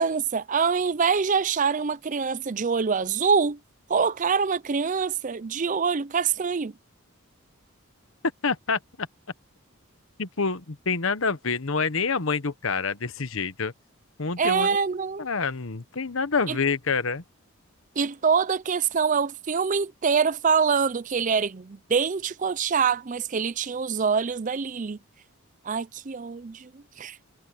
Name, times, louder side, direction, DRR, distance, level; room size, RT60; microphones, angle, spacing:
voice 1, 0.0-3.6 3.9-6.7 14.4-15.3 16.5-16.6 18.0-25.0 25.6-27.2, right 5 dB, 35° right, 0.5 m, -25 dB
voice 2, 8.4-9.1 10.2-13.7 14.2-14.8 15.2-17.2, left 5 dB, 65° left, 1.1 m, -27 dB
head